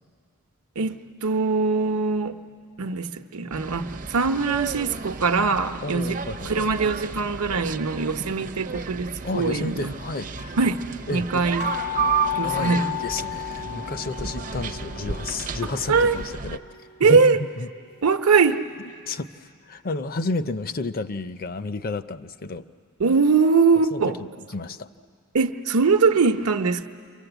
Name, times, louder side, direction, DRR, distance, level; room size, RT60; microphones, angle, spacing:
voice 1, 0.8-2.4 2.8-6.2 6.5-9.9 10.6-10.8 11.1-11.7 12.3-12.9 15.9-16.2 17.0-17.4 18.0-18.6 23.0-24.1 25.3-26.9, right 4 dB, 75° right, 8 dB, 0.9 m, -22 dB
sound 1, 3.5-16.6, right 6 dB, 35° right, 0.6 m, -33 dB
voice 2, 5.8-6.7 9.2-10.3 11.1-11.5 12.4-16.6 17.0-17.7 19.1-22.7 23.9-24.9, left 3 dB, 40° left, 12 dB, 0.6 m, -31 dB
sound 2, 8.4-8.8 9.6-9.7 9.9-10.0 10.2-17.8 18.3-18.4, left 11 dB, 80° left, 2.3 m, -34 dB
29.5 x 24.0 x 8.0 m, 2.2 s
head